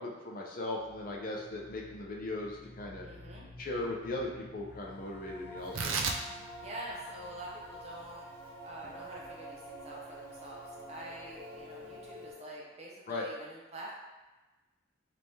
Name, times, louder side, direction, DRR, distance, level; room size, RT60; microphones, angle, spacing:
voice 1, 0.0-3.1 3.6-5.9 13.1-13.2, left 2 dB, 45° left, -1 dB, 0.5 m, -38 dB
sound 1, 0.8-9.4, left 1 dB, 25° left, 0.9 m, -54 dB
voice 2, 3.0-3.5 6.6-8.3 8.6-13.9, right 1 dB, 30° right, -3 dB, 0.7 m, -46 dB
sound 2, 4.6-12.8, equal, 5° left, 1.2 m, -48 dB
Tearing, 5.6-12.3, right 4 dB, 70° right, 0.4 m, -40 dB
3.4 x 3.1 x 2.7 m, 1.2 s
head